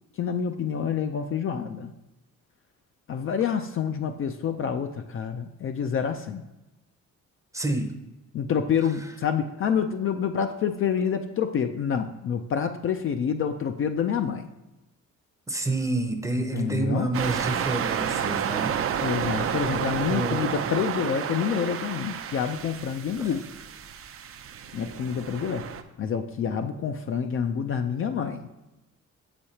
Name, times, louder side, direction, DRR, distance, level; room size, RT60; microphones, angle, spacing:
voice 1, 0.1-1.9 3.1-6.4 8.3-14.5 16.4-17.1 19.0-23.4 24.7-25.7 26.0-28.5, left 7 dB, 45° left, 7 dB, 0.4 m, -27 dB
voice 2, 7.5-7.9 15.5-18.8 20.1-20.5 23.2-23.3, right 2 dB, 10° right, 5 dB, 0.7 m, -29 dB
sound 1, 17.1-25.8, right 8 dB, 50° right, 0.5 m, -30 dB
6.9 x 5.0 x 2.8 m, 0.99 s
cardioid pair, 90°, 30 cm